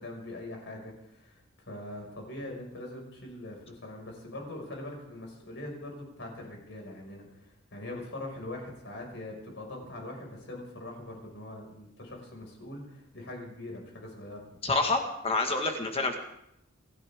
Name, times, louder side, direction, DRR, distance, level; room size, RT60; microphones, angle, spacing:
voice 1, 0.0-1.4 1.7-7.4 7.7-14.5, left 1 dB, 65° left, 1 dB, 5.5 m, -42 dB
voice 2, 14.6-16.2, left 3 dB, 30° left, 4 dB, 1.6 m, -28 dB
28.0 x 12.5 x 3.6 m, 0.78 s
head